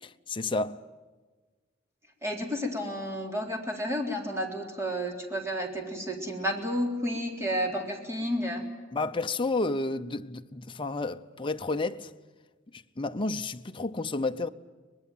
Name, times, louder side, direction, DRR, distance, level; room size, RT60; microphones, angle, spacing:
voice 1, 0.0-0.8 8.9-12.1 12.7-14.5, left 3 dB, 25° left, 0.7 m, -31 dB
voice 2, 2.2-8.6, equal, 15° right, 3.6 m, -31 dB
24.0 x 20.5 x 9.2 m
head